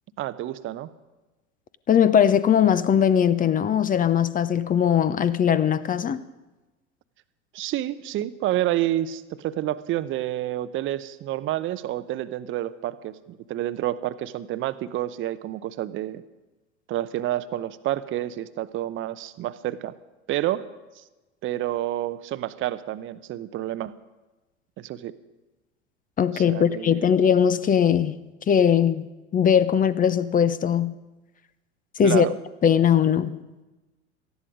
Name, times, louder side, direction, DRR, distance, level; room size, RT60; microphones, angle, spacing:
voice 1, 0.2-0.9 7.5-16.2 16.9-19.9 20.3-20.7 21.0-21.1 21.4-23.9 24.8-25.2 26.3-27.1 32.0-32.3, right 14 dB, 35° right, 13 dB, 0.8 m, -29 dB
voice 2, 1.9-6.2 26.2-28.1 28.5-29.1 29.3-30.9 32.0-32.3 32.6-33.4, left 8 dB, 25° left, 15 dB, 0.8 m, -20 dB
18.5 x 13.5 x 5.1 m, 1.1 s
figure-of-eight pair, 80°, 36 cm